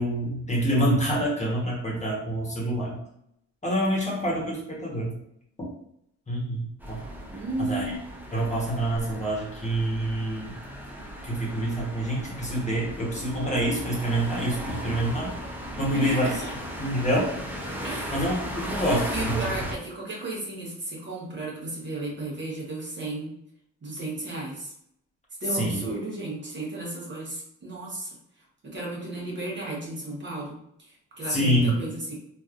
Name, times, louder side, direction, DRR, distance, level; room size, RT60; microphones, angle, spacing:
voice 1, 0.0-3.0 3.6-5.2 5.6-5.7 6.3-7.0 7.6-7.9 8.3-10.5 11.2-15.3 15.8-16.3 16.8-17.3 18.1-19.4 25.5-25.8 31.3-31.7, right 1 dB, 25° left, -4 dB, 1.1 m, -26 dB
sound 1, 6.8-19.7, equal, 5° right, 0.7 m, -36 dB
voice 2, 7.3-8.0 15.9-16.5 17.8-18.3 19.1-23.3 23.8-24.7 25.4-28.1 28.6-32.1, right 2 dB, 40° right, -4 dB, 1.1 m, -33 dB
3.2 x 2.5 x 2.5 m, 0.74 s
cardioid pair, 90°, 30 cm